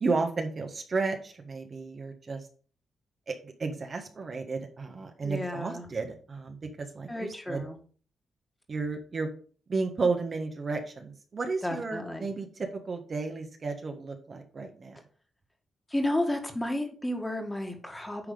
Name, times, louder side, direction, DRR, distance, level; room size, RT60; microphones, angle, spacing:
voice 1, 0.0-2.4 3.3-7.6 8.7-9.3 9.7-15.0, right 4 dB, 45° right, 4 dB, 1.4 m, -33 dB
voice 2, 5.2-5.9 7.1-7.8 11.6-12.3 15.9-18.3, left 1 dB, 15° left, 3 dB, 2.0 m, -32 dB
9.8 x 3.5 x 5.0 m, 0.43 s
cardioid pair, 70°, 0 cm